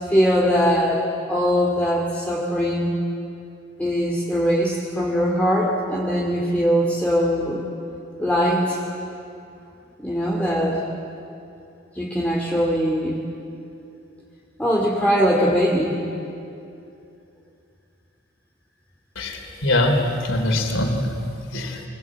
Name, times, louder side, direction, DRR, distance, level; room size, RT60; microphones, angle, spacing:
voice 1, 0.1-1.0 1.3-3.0 3.8-7.6 8.2-8.8 10.0-10.8 11.9-13.2 14.6-15.9, equal, 10° left, -3 dB, 2.6 m, -21 dB
voice 2, 19.2-21.1 21.5-21.8, left 1 dB, 70° left, 3 dB, 3.5 m, -22 dB
24.0 x 20.5 x 8.6 m, 2.6 s
head